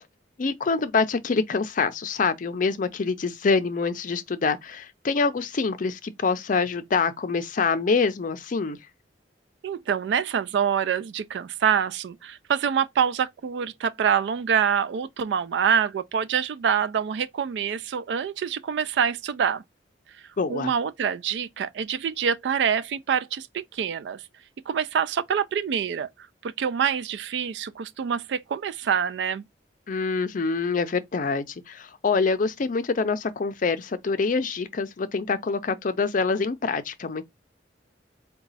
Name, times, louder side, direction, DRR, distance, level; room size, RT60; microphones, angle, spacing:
voice 1, 0.4-8.8 20.4-20.7 29.9-37.2, left 4 dB, 45° left, 0.5 m, -25 dB
voice 2, 9.6-19.6 20.5-24.2 24.7-26.1 26.4-29.4, right 7 dB, 70° right, 0.3 m, -26 dB
4.0 x 2.2 x 3.9 m
head